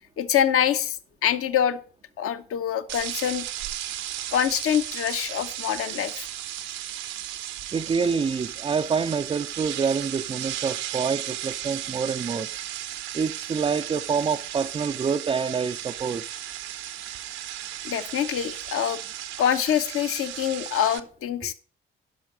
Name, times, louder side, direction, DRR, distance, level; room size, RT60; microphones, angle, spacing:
voice 1, 0.2-1.8 2.2-3.4 4.3-6.3 17.8-19.0 19.4-21.5, left 9 dB, 50° left, 0.8 m, -25 dB
sound 1, 2.9-21.0, right 12 dB, 65° right, 0.7 m, -35 dB
voice 2, 7.7-12.5 13.1-16.3, right 5 dB, 20° right, 0.4 m, -27 dB
10.5 x 5.8 x 5.0 m
figure-of-eight pair, 40°, 29 cm